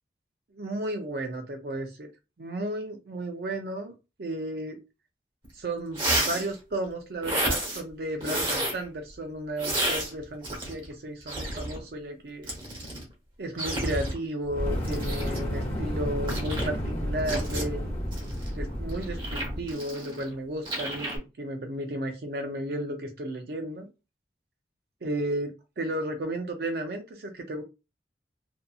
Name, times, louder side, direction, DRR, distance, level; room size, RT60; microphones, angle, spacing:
voice 1, 0.5-2.1 2.4-3.9 4.2-4.8 5.5-12.5 13.4-17.9 18.6-21.1 21.4-23.9 25.0-27.6, right 1 dB, 60° right, 4 dB, 0.5 m, -33 dB
sound 1, 5.4-5.5 5.9-6.5 7.2-7.8 8.2-8.8 9.6-10.9 11.2-11.8 12.4-13.0 13.6-14.2 14.8-15.4 16.3-16.7 17.3-17.6 18.1-20.3 20.6-21.2, right 1 dB, 30° right, 1.0 m, -30 dB
Fire, 14.4-19.7, equal, 35° left, 0.9 m, -31 dB
2.6 x 2.5 x 2.3 m, 0.28 s
head